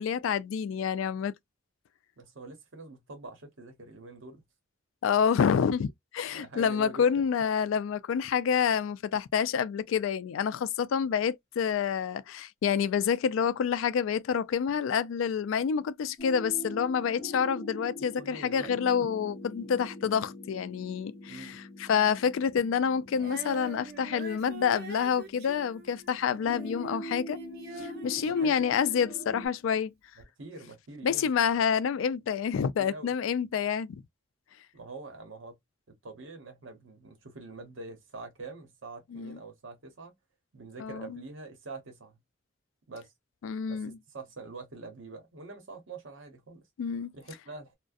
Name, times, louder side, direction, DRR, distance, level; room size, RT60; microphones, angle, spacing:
voice 1, 0.0-1.3 5.0-27.4 27.8-29.9 31.0-34.0 39.1-39.4 40.8-41.2 43.4-44.0 46.8-47.1, left 7 dB, 80° left, 0.3 m, -28 dB
voice 2, 2.2-4.4 6.3-7.2 18.2-18.7 21.3-21.6 28.2-28.6 30.2-31.3 32.8-33.1 34.7-35.6 35.9-40.1 40.5-42.2 42.9-43.1 43.7-46.6 47.1-47.7, right 3 dB, 80° right, 0.8 m, -45 dB
sound 1, 16.2-29.5, equal, 30° left, 0.8 m, -44 dB
Female singing, 23.1-29.5 30.2-30.3, right 3 dB, 50° right, 0.6 m, -45 dB
2.5 x 2.1 x 2.3 m
head